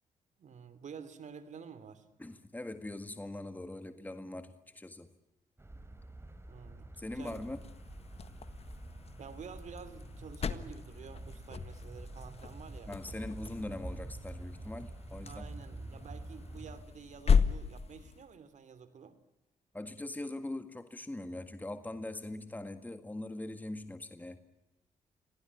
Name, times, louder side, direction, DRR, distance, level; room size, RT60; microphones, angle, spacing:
voice 1, 0.4-2.0 6.5-6.9 7.1-7.4 9.2-12.9 15.3-19.2, right 6 dB, 65° right, 13 dB, 3.0 m, -50 dB
voice 2, 2.2-5.1 7.0-7.6 12.9-15.5 19.7-24.4, left 1 dB, 10° left, 10 dB, 1.8 m, -42 dB
sound 1, 5.6-16.8, right 2 dB, 20° right, 4.1 m, -47 dB
sound 2, 7.2-18.3, left 6 dB, 50° left, 1.6 m, -36 dB
26.0 x 18.0 x 9.8 m, 0.98 s
cardioid pair, 75°, 13 cm